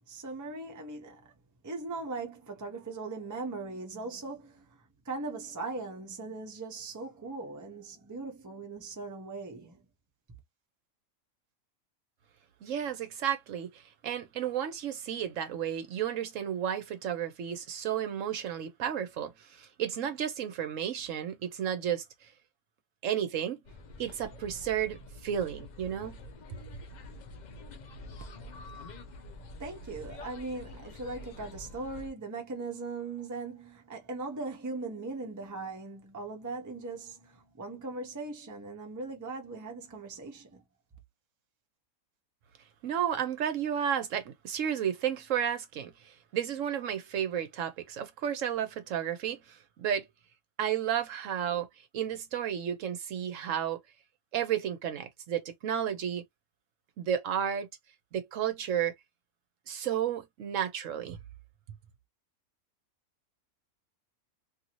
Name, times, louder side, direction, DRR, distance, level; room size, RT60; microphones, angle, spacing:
voice 1, 0.1-1.3 1.6-9.8 29.6-40.6, right 3 dB, 20° right, 0.6 m, -39 dB
voice 2, 12.6-22.0 23.0-23.6 24.0-26.2 42.8-50.1 50.6-53.8 54.3-56.2 57.0-57.7 58.1-58.9 59.7-61.2, right 9 dB, 65° right, 0.9 m, -32 dB
sound 1, 23.6-32.1, left 2 dB, 70° left, 0.4 m, -47 dB
2.7 x 2.6 x 2.8 m
omnidirectional pair, 1.5 m